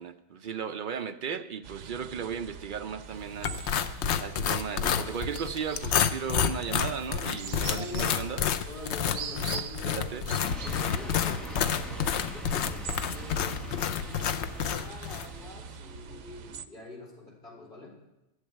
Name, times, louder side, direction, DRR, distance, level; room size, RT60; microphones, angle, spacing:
voice 1, 0.0-3.6 4.2-8.4 9.9-10.3, right 7 dB, 55° right, 0.6 m, -36 dB
sound 1, 1.6-16.7, right 7 dB, 90° right, 1.0 m, -43 dB
sound 2, 3.4-15.3, left 8 dB, 70° left, 0.9 m, -30 dB
voice 2, 7.6-8.1 8.7-10.1 10.6-17.9, left 2 dB, 45° left, 4.1 m, -45 dB
sound 3, 10.4-16.1, right 1 dB, ahead, 1.3 m, -43 dB
11.5 x 7.2 x 9.1 m
omnidirectional pair, 1.2 m